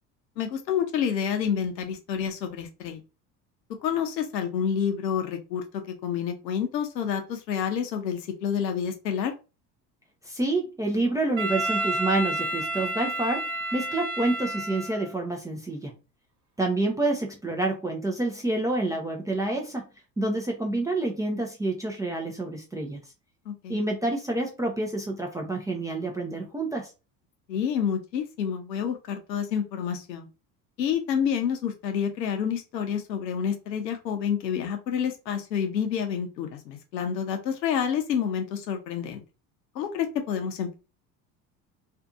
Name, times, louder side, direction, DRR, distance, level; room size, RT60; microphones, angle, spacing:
voice 1, 0.4-3.0 3.8-9.3 23.5-23.8 27.5-30.3 30.8-39.2 39.7-40.7, left 8 dB, 85° left, 6 dB, 0.7 m, -28 dB
voice 2, 10.2-15.9 16.6-19.9 20.2-23.0 23.7-26.9, right 2 dB, 10° right, 0 dB, 0.3 m, -28 dB
Wind instrument woodwind instrument, 11.4-15.2, right 2 dB, 35° right, 0.9 m, -30 dB
2.6 x 2.5 x 2.4 m, 0.30 s
hypercardioid pair, 65°, 49 cm